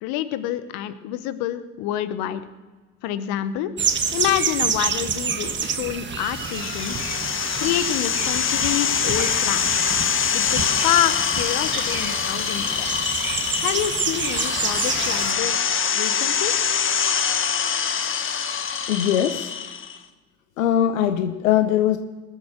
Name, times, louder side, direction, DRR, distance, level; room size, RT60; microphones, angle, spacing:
voice 1, 0.0-2.4 3.0-3.7 4.1-7.1 7.6-9.7 10.3-12.9 13.6-16.6, left 12 dB, 65° left, 13 dB, 1.2 m, -27 dB
sound 1, 3.8-15.3, right 6 dB, 30° right, 1.4 m, -28 dB
sound 2, 6.2-20.0, left 7 dB, 30° left, 1.2 m, -24 dB
voice 2, 18.9-19.5 20.6-22.0, left 10 dB, 90° left, 10 dB, 0.8 m, -21 dB
20.0 x 7.9 x 6.4 m, 1.3 s
hypercardioid pair, 75°, 39 cm